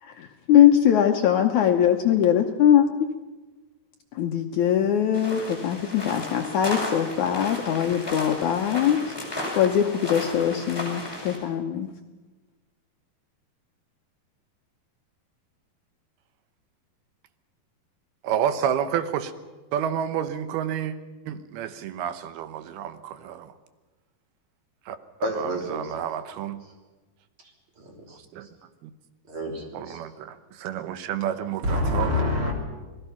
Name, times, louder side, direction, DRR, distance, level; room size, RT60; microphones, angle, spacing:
voice 1, 0.0-3.1 4.1-11.9, left 9 dB, 80° left, 4 dB, 1.7 m, -22 dB
sound 1, 5.1-11.4, left 1 dB, 5° left, 4.9 m, -34 dB
voice 2, 18.2-19.3 19.7-21.0 21.3-23.5 24.9-26.6 28.1-28.5 28.8-28.9 29.7-32.1, right 9 dB, 75° right, 11 dB, 2.9 m, -30 dB
voice 3, 25.2-25.9 27.8-28.2 29.3-30.0 31.6-32.5, left 1 dB, 35° right, 1 dB, 3.9 m, -27 dB
28.5 x 19.0 x 5.8 m, 1.2 s
omnidirectional pair, 4.7 m